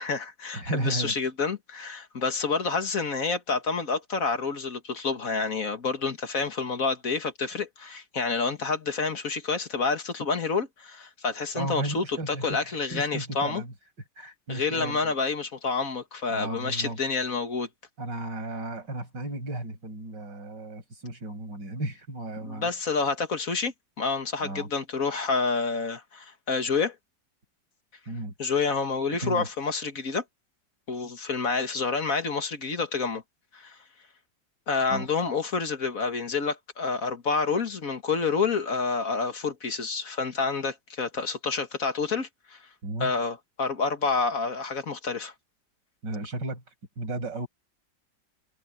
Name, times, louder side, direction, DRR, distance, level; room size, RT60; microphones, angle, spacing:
voice 1, 0.0-13.6 14.5-17.7 22.4-27.0 28.4-30.2 30.9-33.2 33.5-33.8 34.7-42.6 43.0-45.3, left 4 dB, 50° left, 2.1 m, -28 dB
voice 2, 0.5-1.2 11.5-13.7 14.2-15.1 16.3-17.0 18.0-22.7 24.4-24.7 28.1-28.3 29.2-29.5 34.9-35.1 42.8-43.1 46.0-46.6 47.0-47.5, right 1 dB, 75° right, 8.0 m, -34 dB
omnidirectional pair, 1.9 m